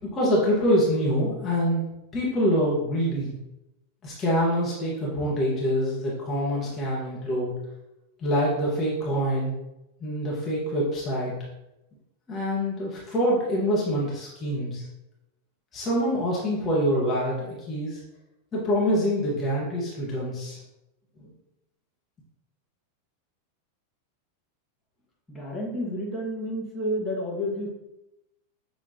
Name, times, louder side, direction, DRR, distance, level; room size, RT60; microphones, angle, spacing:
voice 1, 0.0-1.9 2.1-3.3 4.0-7.5 8.2-9.5 10.0-11.3 12.3-14.8 15.7-18.0 18.5-20.6 21.2-21.3, equal, 25° left, -6 dB, 1.4 m, -25 dB
voice 2, 25.3-27.7, equal, 5° left, -6 dB, 1.5 m, -30 dB
6.6 x 2.9 x 2.8 m, 0.91 s
figure-of-eight pair, 90°, 0 cm